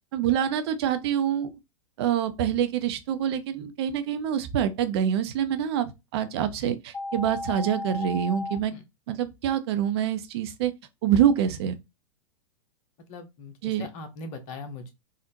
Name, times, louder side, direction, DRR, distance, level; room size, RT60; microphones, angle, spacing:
voice 1, 0.1-1.5 2.0-8.7 9.1-10.7 11.0-11.8 13.6-13.9, right 9 dB, 50° right, 0.6 m, -26 dB
sound 1, 6.9-8.5, left 2 dB, 20° left, 1.8 m, -34 dB
voice 2, 13.1-14.9, left 3 dB, 40° left, 0.8 m, -40 dB
3.8 x 2.1 x 2.7 m
figure-of-eight pair, 95°, 17 cm